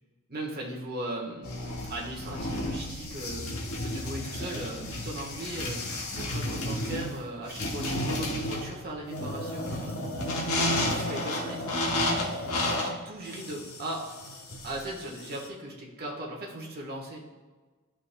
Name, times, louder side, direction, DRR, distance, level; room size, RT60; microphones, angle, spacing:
voice 1, 0.3-1.6 1.9-3.5 3.8-10.1 10.6-11.7 12.8-14.0 14.6-17.2, right 1 dB, 45° right, -2 dB, 1.4 m, -38 dB
sound 1, 1.4-15.5, left 1 dB, 75° left, 1.0 m, -32 dB
12.0 x 5.1 x 2.3 m, 1.3 s
head